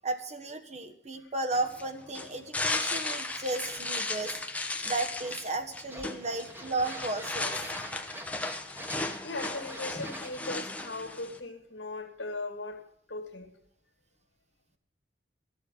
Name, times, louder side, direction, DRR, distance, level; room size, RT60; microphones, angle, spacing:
voice 1, 0.0-4.3 4.8-7.6, right 2 dB, 40° right, 1.3 m, -34 dB
sound 1, 1.5-11.4, left 2 dB, 10° left, 0.9 m, -35 dB
sound 2, 3.2-4.4 4.8-5.6 5.9-10.4, right 1 dB, 10° right, 1.4 m, -46 dB
voice 2, 9.2-12.8 13.1-13.5, left 2 dB, 75° left, 2.1 m, -38 dB
13.5 x 7.0 x 8.4 m
head